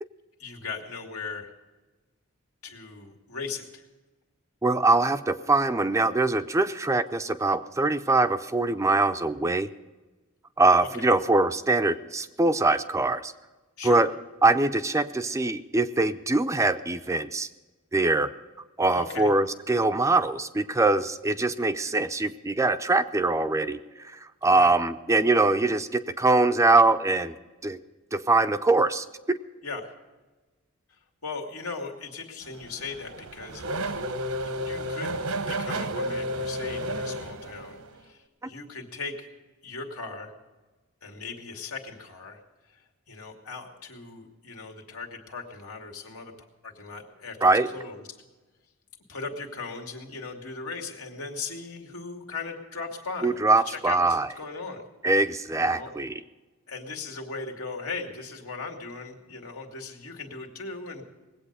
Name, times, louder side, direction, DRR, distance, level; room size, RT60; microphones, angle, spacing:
voice 1, 0.4-1.5 2.6-3.9 10.8-11.2 13.8-14.0 18.9-19.3 24.4-24.7 29.6-29.9 31.2-33.6 34.4-35.1 35.5-39.3 39.6-40.3 41.0-46.3 46.6-48.1 49.1-53.4 53.7-54.8 55.6-55.9 56.7-61.0, left 4 dB, 85° left, 2 dB, 2.2 m, -38 dB
voice 2, 4.6-9.7 10.6-13.3 13.8-14.1 14.4-17.5 17.9-18.3 18.8-27.3 27.6-27.8 28.1-29.4 47.4-47.7 53.2-54.3 55.0-56.2, right 2 dB, 15° right, 11 dB, 0.4 m, -23 dB
Race car auto racing / Accelerating revving vroom, 32.4-38.0, right 1 dB, 80° right, 1.0 m, -32 dB
20.0 x 8.4 x 6.6 m, 1.2 s
head